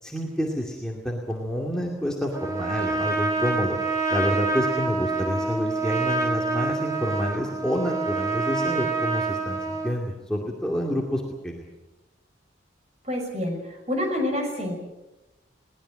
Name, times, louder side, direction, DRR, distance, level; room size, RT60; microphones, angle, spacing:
voice 1, 0.0-3.8 4.1-11.6, equal, 5° left, -2 dB, 2.4 m, -28 dB
Trumpet, 2.3-10.0, right 3 dB, 15° right, 2.4 m, -27 dB
voice 2, 13.0-14.7, left 1 dB, 35° right, 3 dB, 6.1 m, -27 dB
21.5 x 19.0 x 7.7 m, 0.98 s
head